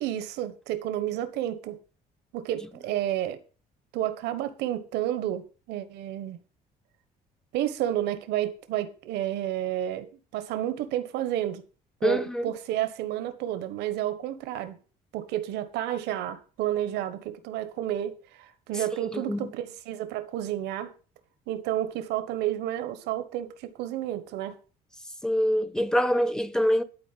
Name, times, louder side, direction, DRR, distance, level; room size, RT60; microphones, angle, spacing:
voice 1, 0.0-1.8 2.3-3.4 3.9-6.4 7.5-10.1 10.3-11.6 12.0-14.8 15.1-20.9 21.5-24.6, right 12 dB, 90° right, 1.2 m, -31 dB
voice 2, 12.0-12.5 19.1-19.5 25.2-26.8, equal, 5° left, 0.8 m, -25 dB
12.0 x 4.4 x 7.5 m
cardioid pair, 110°, 17 cm